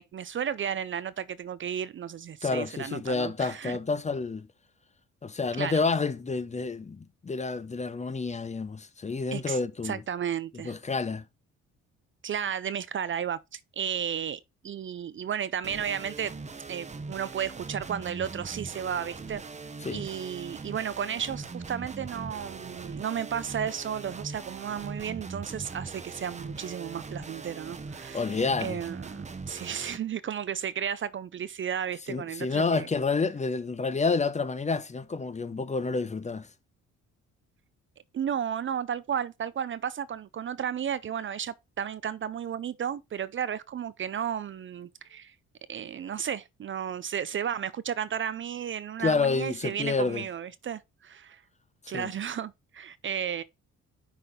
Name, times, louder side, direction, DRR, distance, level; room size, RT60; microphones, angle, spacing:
voice 1, 0.0-3.8 5.6-5.8 9.3-9.6 9.8-10.7 12.2-16.3 16.7-19.4 19.9-28.3 28.6-32.9 38.1-45.3 45.7-51.4 51.9-53.4, right 8 dB, 40° right, 0.5 m, -33 dB
voice 2, 2.4-4.5 5.2-10.0 10.6-11.2 19.8-20.0 28.1-28.8 32.1-36.5 49.0-50.3 51.9-52.1, left 4 dB, 25° left, 0.7 m, -29 dB
sound 1, 15.6-30.0, right 4 dB, 25° right, 0.9 m, -41 dB
5.9 x 4.0 x 4.9 m
cardioid pair, 90°, 30 cm